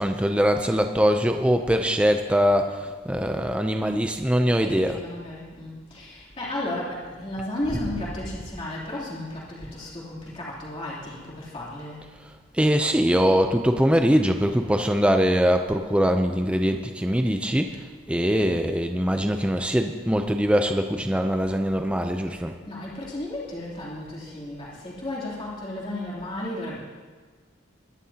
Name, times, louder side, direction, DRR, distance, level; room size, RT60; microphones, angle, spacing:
voice 1, 0.0-5.0 12.5-17.8 18.1-22.5, equal, 5° right, 5 dB, 0.5 m, -22 dB
voice 2, 4.6-12.0 22.7-26.8, left 1 dB, 30° left, -6 dB, 3.1 m, -34 dB
22.0 x 11.5 x 2.9 m, 1.5 s
head